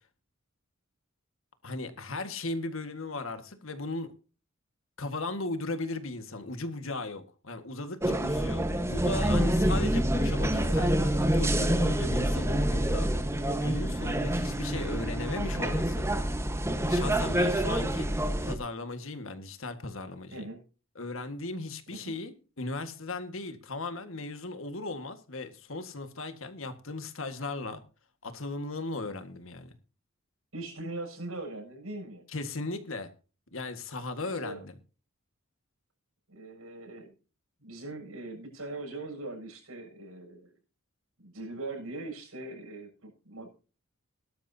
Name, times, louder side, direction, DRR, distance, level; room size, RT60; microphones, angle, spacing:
voice 1, 1.6-4.1 5.0-13.1 13.6-16.1 16.9-18.1 18.4-20.5 21.0-27.8 28.2-29.7 32.3-33.1 33.5-34.7, left 2 dB, 65° left, 9 dB, 1.8 m, -37 dB
sound 1, 8.0-18.5, right 1 dB, 10° right, 1.3 m, -27 dB
voice 2, 30.5-32.3 34.3-34.6 36.3-37.1 37.6-40.5 41.2-43.6, right 2 dB, 80° right, 2 dB, 7.3 m, -41 dB
18.0 x 12.5 x 2.8 m, 0.35 s
head